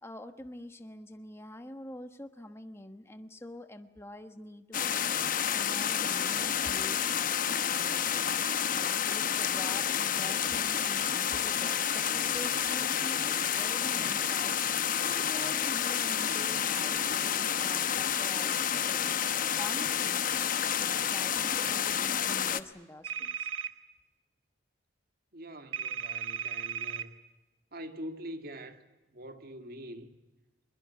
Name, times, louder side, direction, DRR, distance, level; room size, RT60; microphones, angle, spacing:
voice 1, 0.0-20.2 20.6-23.5, left 1 dB, 15° left, 1.2 m, -46 dB
sound 1, 4.7-22.6, left 9 dB, 45° left, 0.9 m, -29 dB
sound 2, 23.0-23.7 25.7-27.1, right 8 dB, 80° right, 1.6 m, -35 dB
voice 2, 25.3-27.1 27.7-28.8 29.1-30.2, right 1 dB, 50° right, 2.3 m, -44 dB
22.5 x 21.5 x 9.7 m
head